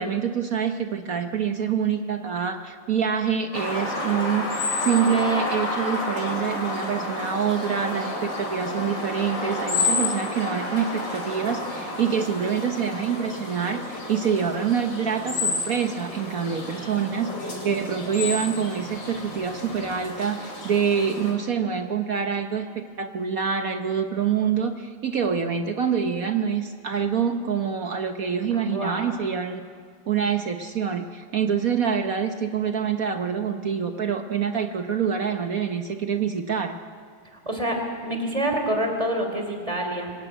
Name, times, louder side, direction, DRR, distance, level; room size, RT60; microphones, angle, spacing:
voice 1, 0.0-29.6 30.1-36.7, right 7 dB, 55° right, 6 dB, 1.3 m, -26 dB
sound 1, 3.5-21.3, left 2 dB, 85° left, 4.3 m, -30 dB
voice 2, 28.5-29.2 37.4-40.1, right 1 dB, 20° right, 3 dB, 3.4 m, -27 dB
25.0 x 15.0 x 9.2 m, 2.1 s
omnidirectional pair, 1.9 m